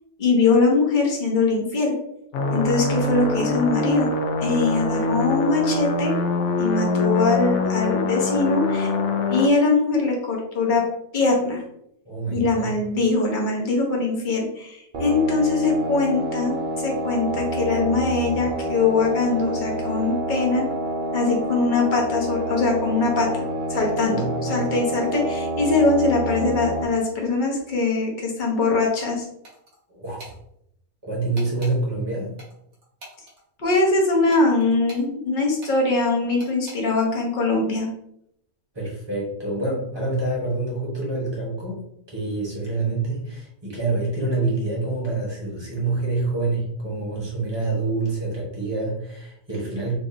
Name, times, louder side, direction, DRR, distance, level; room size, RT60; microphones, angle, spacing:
voice 1, 0.2-2.0 2.5-4.1 4.4-6.1 6.6-8.9 9.3-10.8 11.1-11.6 12.3-20.6 21.1-29.2 33.6-37.9, left 3 dB, 40° left, -1 dB, 0.8 m, -22 dB
sound 1, 2.3-9.5, left 3 dB, 65° left, 0.7 m, -24 dB
voice 2, 12.0-12.7 24.1-24.7 29.9-30.3 31.0-32.4 38.7-41.8 42.1-50.0, right 3 dB, 20° right, -4 dB, 1.1 m, -27 dB
sound 2, 14.9-26.8, equal, 70° right, 0.4 m, -28 dB
sound 3, 29.4-29.8 30.2-30.4 31.4-31.8 32.4-33.4 34.3-35.1 35.6-35.8 36.4-36.8, right 1 dB, 50° right, 1.4 m, -43 dB
4.5 x 2.6 x 2.7 m, 0.76 s
omnidirectional pair, 1.6 m